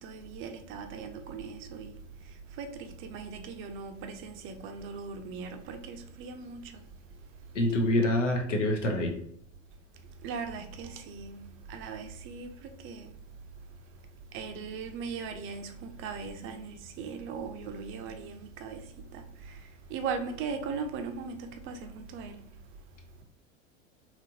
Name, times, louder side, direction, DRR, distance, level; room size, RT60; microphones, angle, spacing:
voice 1, 0.0-1.9 2.6-6.6 10.2-11.4 11.7-13.1 14.3-18.8 19.1-19.2 19.9-22.4, right 5 dB, 35° right, 0.6 m, -39 dB
voice 2, 7.5-9.2, left 1 dB, 70° left, 1.0 m, -26 dB
4.2 x 3.1 x 2.7 m
figure-of-eight pair, 80°, 38 cm